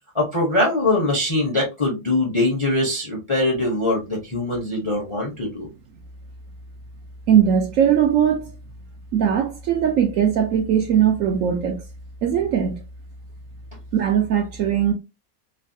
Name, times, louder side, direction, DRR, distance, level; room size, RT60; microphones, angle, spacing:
voice 1, 0.1-5.7, left 2 dB, 30° left, 0.6 m, -22 dB
voice 2, 7.3-8.5 9.1-11.8 12.2-12.8 13.9-14.9, right 9 dB, 70° right, 0.8 m, -19 dB
3.2 x 2.2 x 2.6 m
omnidirectional pair, 1.7 m